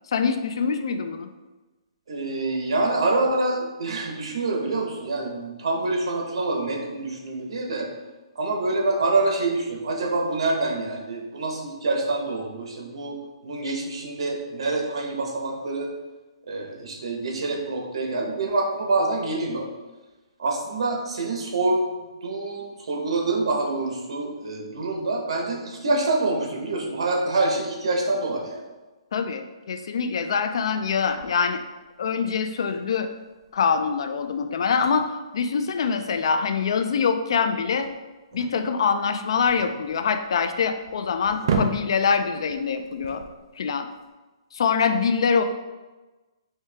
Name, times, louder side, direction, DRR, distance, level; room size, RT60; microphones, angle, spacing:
voice 1, 0.1-1.3 29.1-31.6 32.0-33.1 33.5-37.9 38.3-43.2 43.6-43.9 44.5-45.4, left 6 dB, 60° left, 8 dB, 0.4 m, -24 dB
voice 2, 2.1-7.9 8.3-13.2 13.4-15.9 16.5-19.7 20.4-28.6, right 2 dB, 70° right, 0 dB, 1.0 m, -26 dB
sound 1, 30.9-44.0, right 5 dB, 50° right, 0.5 m, -36 dB
4.5 x 2.8 x 3.4 m, 1.2 s
hypercardioid pair, 165°, 3 cm